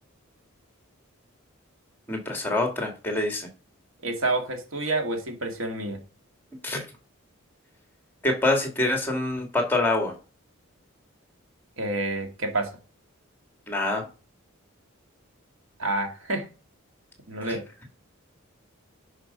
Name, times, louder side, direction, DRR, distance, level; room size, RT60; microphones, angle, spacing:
voice 1, 2.1-3.5 6.6-6.8 8.2-10.1 13.7-14.0 17.5-17.6, left 2 dB, 10° left, 3 dB, 2.0 m, -25 dB
voice 2, 4.0-6.0 11.8-12.7 15.8-16.4 17.3-17.6, right 2 dB, 70° right, 4 dB, 2.1 m, -28 dB
11.0 x 5.0 x 5.2 m, 0.34 s
head